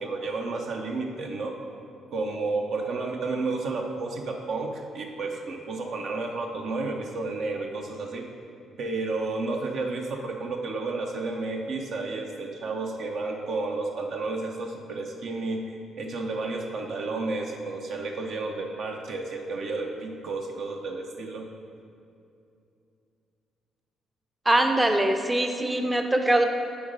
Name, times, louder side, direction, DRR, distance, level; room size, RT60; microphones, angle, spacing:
voice 1, 0.0-1.5 2.1-8.3 8.8-21.5, right 3 dB, 70° right, 2 dB, 0.7 m, -31 dB
voice 2, 24.5-26.4, right 1 dB, 15° right, 5 dB, 0.5 m, -22 dB
7.0 x 4.0 x 5.2 m, 2.5 s
cardioid pair, 90°, 0 cm